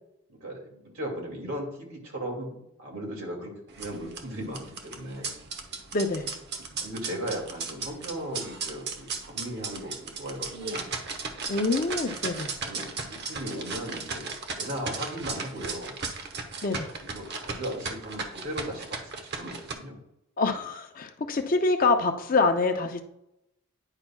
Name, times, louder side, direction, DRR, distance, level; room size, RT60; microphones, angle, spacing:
voice 1, 0.3-5.4 6.8-10.8 11.7-12.0 12.6-14.3 14.6-15.9 17.0-20.0, equal, 75° right, -1 dB, 2.3 m, -37 dB
sound 1, 3.7-19.7, right 4 dB, 50° right, 0.8 m, -36 dB
voice 2, 5.9-6.3 11.5-12.5 16.6-16.9 20.4-23.0, left 3 dB, 40° left, 6 dB, 0.6 m, -25 dB
9.8 x 5.8 x 2.3 m, 0.82 s
head